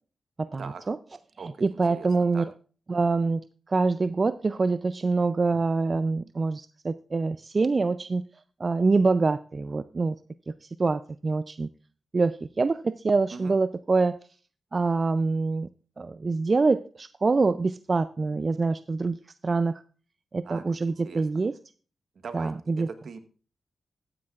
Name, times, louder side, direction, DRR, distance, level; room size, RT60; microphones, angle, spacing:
voice 1, 0.4-1.0 1.6-2.4 2.9-3.4 3.7-8.2 8.6-10.1 10.6-11.7 12.1-14.2 14.7-15.7 16.0-19.2 19.4-19.8 20.3-21.5 22.3-22.9, right 3 dB, 40° right, 13 dB, 0.4 m, -25 dB
voice 2, 1.4-2.5 13.3-13.6 20.4-21.3 22.1-23.2, right 5 dB, 70° right, 9 dB, 1.1 m, -42 dB
14.0 x 9.8 x 2.4 m, 0.39 s
cardioid pair, 70°, 0 cm